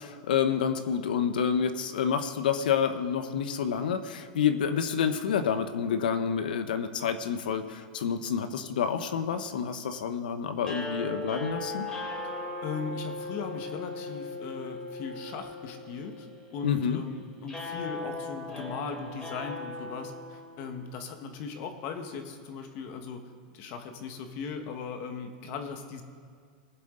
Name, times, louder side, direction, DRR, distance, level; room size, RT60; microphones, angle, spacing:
voice 1, 0.0-11.9 16.6-17.0, left 7 dB, 85° left, 9 dB, 1.0 m, -28 dB
sound 1, 10.6-20.8, left 2 dB, 15° left, 3.3 m, -38 dB
voice 2, 12.6-16.3 16.5-26.0, left 5 dB, 45° left, 6 dB, 1.5 m, -38 dB
21.0 x 7.6 x 3.9 m, 2.2 s
supercardioid pair, 145°, 5 cm